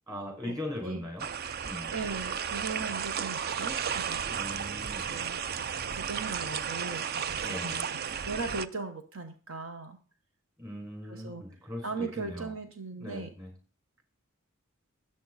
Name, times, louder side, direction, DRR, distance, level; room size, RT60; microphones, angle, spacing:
voice 1, 0.1-1.3 1.6-1.9 4.2-5.0 7.4-7.8 10.6-12.5 12.9-13.5, left 1 dB, 20° right, 1 dB, 5.9 m, -39 dB
sound 1, 1.2-8.7, right 7 dB, 50° right, 0.5 m, -34 dB
voice 2, 1.9-4.4 4.9-5.6 5.9-7.8 8.2-10.0 11.1-11.4 11.8-13.3, right 4 dB, 75° right, 7 dB, 1.2 m, -38 dB
13.5 x 9.2 x 4.1 m, 0.36 s
head